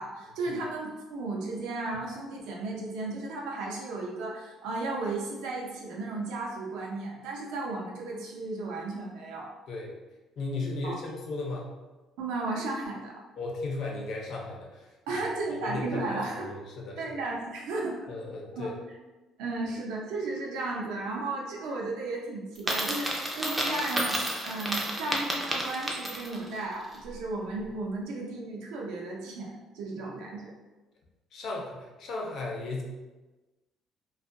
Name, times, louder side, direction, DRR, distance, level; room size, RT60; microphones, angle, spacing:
voice 1, 0.0-9.5 10.8-11.0 12.2-13.1 15.1-16.5 17.0-18.0 18.5-18.7 19.4-30.5, right 2 dB, 90° right, -2 dB, 0.6 m, -34 dB
voice 2, 10.4-11.7 13.4-15.2 15.6-17.2 18.1-18.7 31.3-32.8, left 2 dB, 50° left, -1 dB, 0.5 m, -36 dB
Coin (dropping), 22.6-26.5, right 1 dB, 10° right, 0.3 m, -31 dB
2.6 x 2.3 x 2.6 m, 1.2 s
cardioid pair, 160°, 0 cm